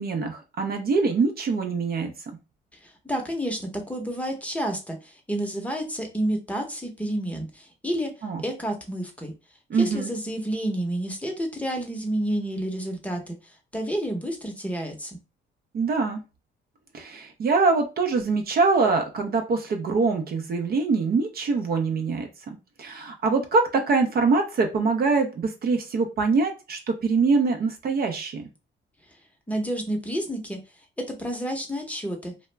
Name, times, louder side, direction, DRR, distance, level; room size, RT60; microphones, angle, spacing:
voice 1, 0.0-2.1 8.2-8.4 9.7-10.1 15.7-16.2 16.9-28.5, right 4 dB, 50° right, 5 dB, 0.5 m, -24 dB
voice 2, 2.8-8.1 8.4-9.3 9.7-15.2 29.5-30.6 31.1-32.3, right 1 dB, 5° left, 2 dB, 0.7 m, -30 dB
2.3 x 2.0 x 3.2 m, 0.29 s
cardioid pair, 90°, 20 cm